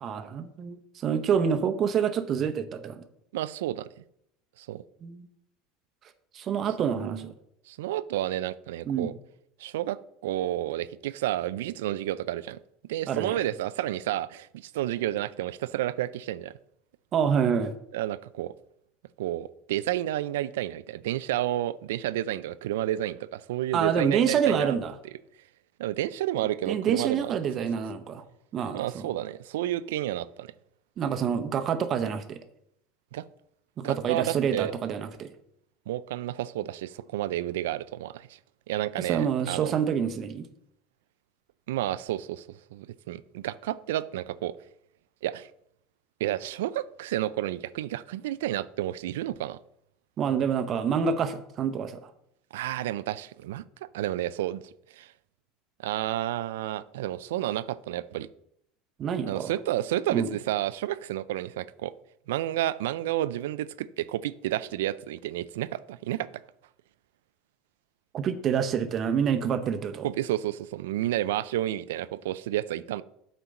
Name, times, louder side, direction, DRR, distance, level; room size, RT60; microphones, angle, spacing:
voice 1, 0.0-3.1 5.0-5.3 6.3-7.3 8.9-9.1 13.1-13.4 17.1-17.7 23.7-24.9 26.7-28.2 28.5-29.1 31.0-32.4 33.8-35.3 38.9-40.5 50.2-52.1 59.0-59.5 60.1-60.3 68.1-70.1, right 7 dB, 40° right, 10 dB, 0.9 m, -27 dB
voice 2, 3.3-3.9 4.6-4.8 6.9-7.3 7.7-9.1 9.6-12.6 12.9-16.5 17.9-18.5 19.2-24.8 25.8-27.3 28.7-30.5 33.1-33.2 33.8-34.7 35.9-38.4 38.7-39.7 41.7-44.6 45.2-45.5 46.2-49.6 52.5-54.6 54.9-55.1 55.8-58.3 59.3-61.9 62.3-66.3 70.0-73.0, right 13 dB, 85° right, 16 dB, 0.3 m, -31 dB
8.1 x 4.5 x 5.2 m, 0.76 s
supercardioid pair, 110°, 0 cm